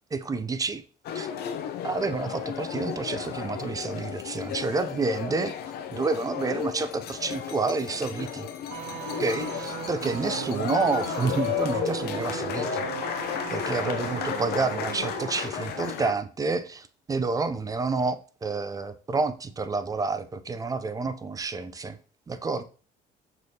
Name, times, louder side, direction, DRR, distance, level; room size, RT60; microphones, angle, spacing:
voice 1, 0.1-0.8 1.1-1.3 1.8-5.5 5.9-8.5 9.2-12.8 13.5-22.0 22.3-22.6, right 4 dB, 20° right, 0.4 m, -29 dB
sound 1, 1.0-16.1, left 9 dB, 70° left, 0.5 m, -33 dB
sound 2, 8.7-15.4 15.7-15.8, right 10 dB, 90° right, 0.5 m, -37 dB
5.9 x 3.3 x 2.7 m
cardioid pair, 110°, 17 cm